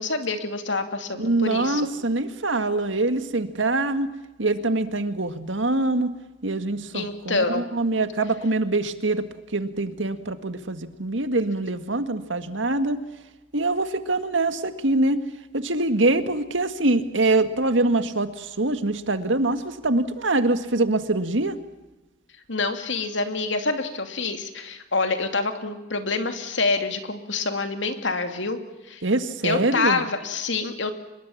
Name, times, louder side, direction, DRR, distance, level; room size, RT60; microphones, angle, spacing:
voice 1, 0.0-1.9 6.9-7.7 22.5-28.6 28.9-29.0 29.4-31.0, left 3 dB, 75° left, 7 dB, 2.6 m, -27 dB
voice 2, 1.2-4.1 4.4-6.1 6.4-9.3 9.5-13.0 13.5-15.2 15.5-21.6 29.0-30.0, right 2 dB, 85° right, 9 dB, 1.9 m, -24 dB
25.5 x 21.5 x 7.3 m, 1.1 s
head